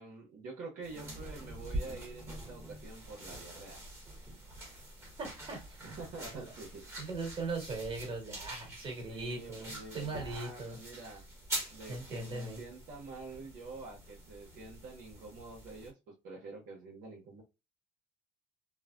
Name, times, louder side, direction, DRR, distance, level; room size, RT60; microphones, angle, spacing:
voice 1, 0.0-3.8 5.8-6.9 9.1-11.2 11.7-17.4, right 3 dB, 70° right, 1.0 m, -47 dB
sound 1, 0.8-15.9, right 1 dB, 15° right, 1.3 m, -45 dB
voice 2, 5.2-6.0 7.0-10.8 11.9-12.6, right 3 dB, 35° right, 1.6 m, -39 dB
3.1 x 2.1 x 2.3 m
supercardioid pair, 100°, 14 cm